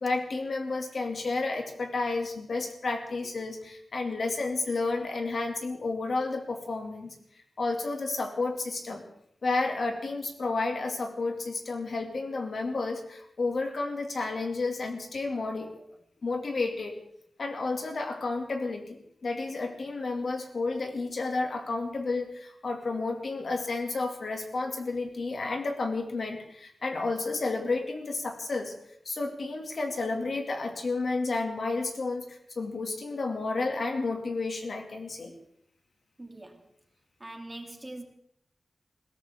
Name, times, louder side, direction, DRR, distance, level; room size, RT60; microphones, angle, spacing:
voice 1, 0.0-7.1 7.6-9.0 9.4-15.7 16.2-17.0 17.4-19.0 19.2-28.7 29.1-35.3, left 3 dB, 60° left, 4 dB, 2.3 m, -31 dB
voice 2, 36.2-36.7 37.2-38.0, right 1 dB, 20° right, 3 dB, 2.1 m, -42 dB
21.0 x 17.5 x 3.6 m, 0.70 s
wide cardioid pair, 140°, 0 cm